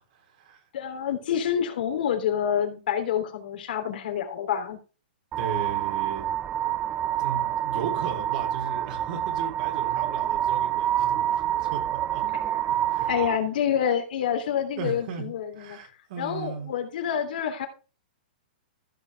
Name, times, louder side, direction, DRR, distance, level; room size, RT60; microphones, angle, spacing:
voice 1, 0.1-0.6 5.4-6.3 7.0-12.2 12.9-13.1 14.8-16.7, right 6 dB, 55° right, 3 dB, 3.7 m, -37 dB
voice 2, 0.7-4.8 13.1-15.8 16.2-17.7, left 9 dB, 70° left, 5 dB, 3.3 m, -27 dB
sound 1, 5.3-13.4, right 11 dB, 25° right, 0.4 m, -27 dB
15.5 x 5.9 x 3.6 m, 0.33 s
hypercardioid pair, 150°, 5 cm